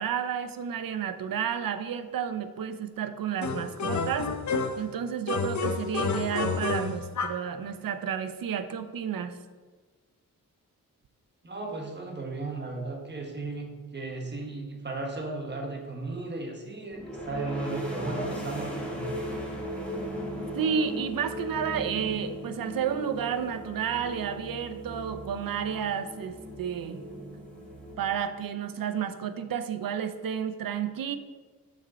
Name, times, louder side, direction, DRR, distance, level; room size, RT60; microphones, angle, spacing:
voice 1, 0.0-4.3 4.8-9.3 20.5-27.0 28.0-31.2, right 8 dB, 75° right, 10 dB, 0.6 m, -31 dB
sound 1, 3.4-4.9 5.3-7.5, left 4 dB, 55° left, 0.6 m, -30 dB
voice 2, 11.4-19.1, right 3 dB, 30° right, 1 dB, 1.4 m, -35 dB
sound 2, 16.9-28.5, equal, 5° left, 1.6 m, -38 dB
6.6 x 6.2 x 4.2 m, 1.4 s
wide cardioid pair, 125°, 34 cm